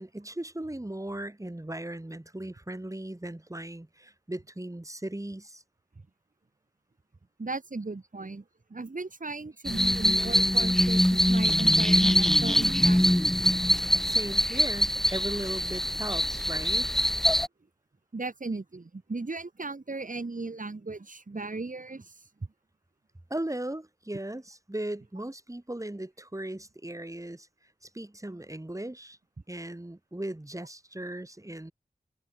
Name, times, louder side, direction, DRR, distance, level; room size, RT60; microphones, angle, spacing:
voice 1, 0.0-5.6 13.9-17.1 23.3-27.5 27.8-29.2 29.5-31.7, right 1 dB, 20° right, 3.9 m, -37 dB
voice 2, 7.4-8.4 8.7-13.0 18.1-22.2, right 3 dB, 60° right, 5.8 m, -36 dB
sound 1, 9.6-17.5, equal, 5° left, 0.3 m, -23 dB
wide cardioid pair, 45°, 16 cm